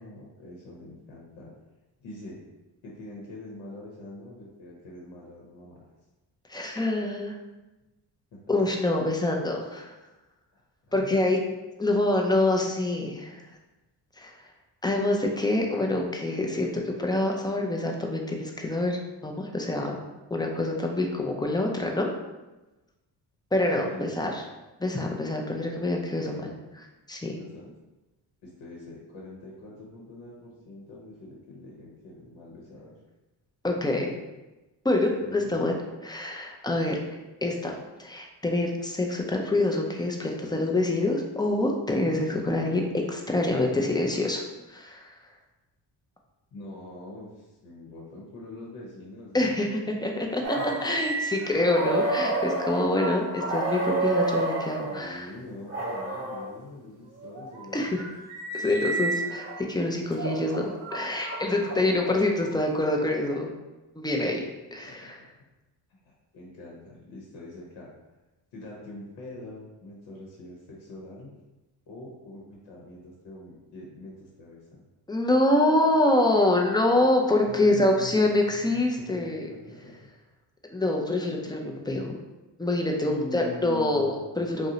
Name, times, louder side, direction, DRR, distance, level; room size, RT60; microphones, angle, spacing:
voice 1, 0.0-1.5 2.0-2.4 2.8-5.8 8.3-8.5 10.5-10.6 10.9-11.2 23.8-24.4 26.1-26.6 27.4-27.7 28.4-32.9 33.8-34.2 35.1-35.5 46.5-49.9 50.4-50.8 54.9-58.0 59.9-60.3 61.5-61.7 64.8-65.3 65.9-67.9 68.5-71.3 71.9-74.8 77.4-80.1 83.0-84.2, left 1 dB, 75° left, -4 dB, 0.8 m, -44 dB
voice 2, 6.5-7.4 8.5-9.9 10.9-11.4 11.8-13.4 14.2-14.5 14.8-20.0 20.3-22.1 23.5-24.4 24.8-26.3 27.1-27.4 33.6-34.1 34.8-35.7 36.0-37.0 37.4-45.1 49.3-55.3 57.7-58.0 58.5-63.5 63.9-64.5 64.7-65.2 75.1-79.5 80.7-82.2 82.6-84.7, left 2 dB, 10° left, 0 dB, 0.4 m, -26 dB
sound 1, 50.4-55.0 55.7-56.4 57.2-59.6 60.1-62.5, right 2 dB, 30° right, 0.9 m, -30 dB
2.7 x 2.1 x 3.7 m, 1.1 s
supercardioid pair, 60°, 46 cm